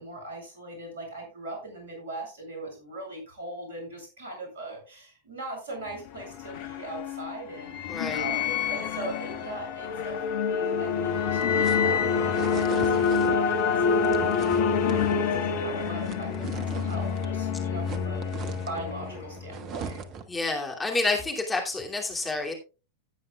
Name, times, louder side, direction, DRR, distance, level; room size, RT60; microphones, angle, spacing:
voice 1, 0.0-18.3 18.7-20.0, right 2 dB, 60° right, 2 dB, 7.6 m, -40 dB
sound 1, 5.9-19.6, left 6 dB, 50° left, 1.4 m, -27 dB
voice 2, 7.9-8.2 20.3-22.5, left 3 dB, 10° left, 0 dB, 2.7 m, -29 dB
sound 2, 11.0-17.4 17.6-20.4, right 6 dB, 35° right, 1.3 m, -41 dB
16.0 x 9.4 x 2.4 m, 0.31 s
figure-of-eight pair, 90°, 0 cm